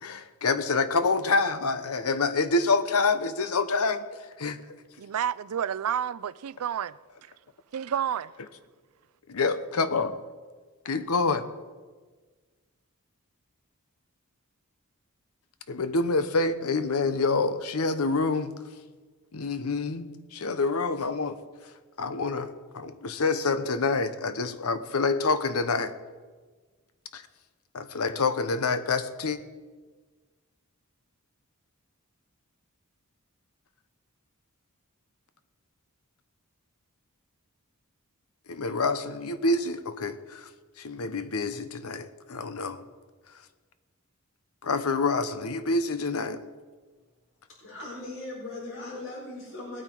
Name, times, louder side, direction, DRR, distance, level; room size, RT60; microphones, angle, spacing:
voice 1, 0.0-4.1 4.4-4.6 9.3-10.2 10.8-11.4 15.7-18.5 19.3-21.4 22.0-25.9 27.1-27.2 27.7-29.4 38.5-40.5 40.8-42.8 44.6-46.4, left 3 dB, 75° left, 0.9 m, -27 dB
voice 2, 5.0-6.9 7.7-8.3, right 9 dB, 75° right, 0.4 m, -30 dB
voice 3, 47.6-49.8, left 2 dB, 60° left, 4.9 m, -39 dB
19.5 x 9.0 x 4.6 m
head